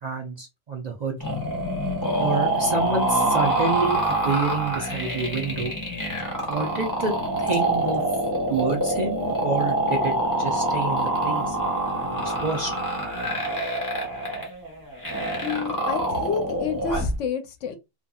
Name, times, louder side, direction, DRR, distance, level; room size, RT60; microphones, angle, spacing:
voice 1, 0.0-1.2 2.2-5.7 6.5-7.1 7.4-8.0 8.5-11.6 12.0-12.7, right 4 dB, 45° right, 0.6 m, -28 dB
sound 1, 1.2-17.2, right 1 dB, 15° left, 1.0 m, -25 dB
voice 2, 15.4-17.8, left 6 dB, 80° left, 0.9 m, -29 dB
2.6 x 2.6 x 2.3 m
omnidirectional pair, 1.3 m